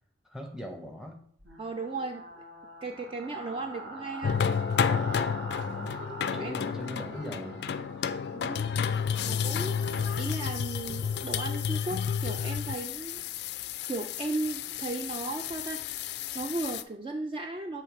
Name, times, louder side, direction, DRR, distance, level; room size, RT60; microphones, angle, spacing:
voice 1, 0.2-1.2 5.5-6.0 6.3-7.6, equal, 5° right, 3 dB, 0.7 m, -40 dB
sound 1, 1.4-10.3, right 1 dB, 80° right, 1.2 m, -44 dB
voice 2, 1.6-2.3 2.8-4.4 6.1-6.5 8.3-8.7 9.2-13.2 13.9-15.8 16.3-17.8, right 2 dB, 30° right, 5 dB, 0.3 m, -36 dB
sound 2, 4.2-16.8, left 7 dB, 60° left, 0.3 m, -31 dB
6.9 x 3.1 x 4.6 m, 0.63 s
head